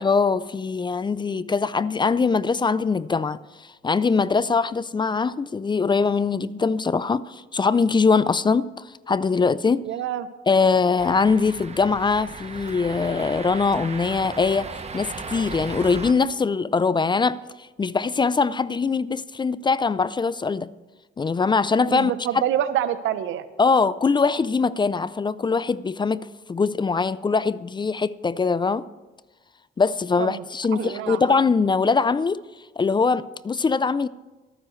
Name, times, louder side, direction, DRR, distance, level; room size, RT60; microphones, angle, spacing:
voice 1, 0.0-9.8 10.5-17.4 17.8-20.7 21.2-22.1 23.6-28.9 29.8-32.4 32.8-34.1, left 4 dB, 25° left, 0.4 m, -22 dB
voice 2, 9.8-10.3 21.9-23.5 30.2-30.4 30.7-31.3, right 11 dB, 80° right, 0.7 m, -26 dB
sound 1, 11.0-16.1, right 4 dB, 35° right, 1.1 m, -36 dB
24.0 x 9.5 x 3.2 m
cardioid pair, 90°, 20 cm